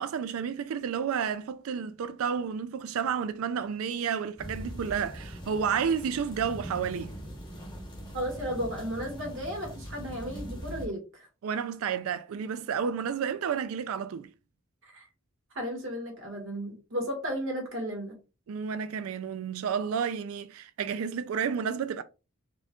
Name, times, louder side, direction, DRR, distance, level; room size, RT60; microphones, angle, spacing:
voice 1, 0.0-7.2 11.4-14.3 18.5-22.0, right 7 dB, 90° right, 0.4 m, -31 dB
sound 1, 4.4-10.9, equal, 20° left, 0.9 m, -41 dB
voice 2, 8.1-11.3 14.8-15.0 15.5-18.2, equal, 70° right, 1.6 m, -34 dB
4.3 x 3.0 x 2.3 m
head